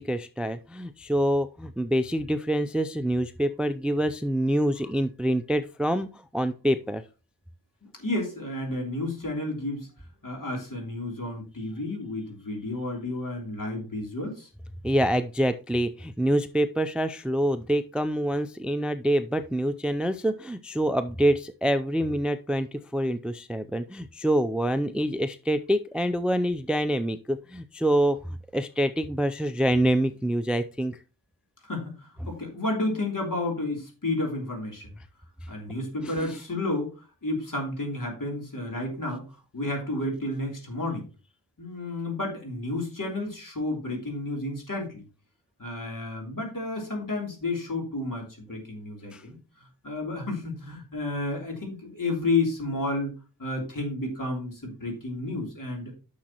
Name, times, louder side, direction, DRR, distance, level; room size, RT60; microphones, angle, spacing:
voice 1, 0.0-7.0 14.8-31.0 36.0-36.4 49.1-49.2, equal, 5° right, 11 dB, 0.4 m, -26 dB
voice 2, 8.0-9.9 10.2-14.5 31.6-34.9 35.5-36.9 37.2-39.2 39.5-41.1 41.6-45.0 45.6-49.4 49.8-53.1 53.4-55.9, left 2 dB, 55° left, 0 dB, 3.3 m, -31 dB
10.0 x 6.3 x 2.9 m, 0.33 s
wide cardioid pair, 75°, 38 cm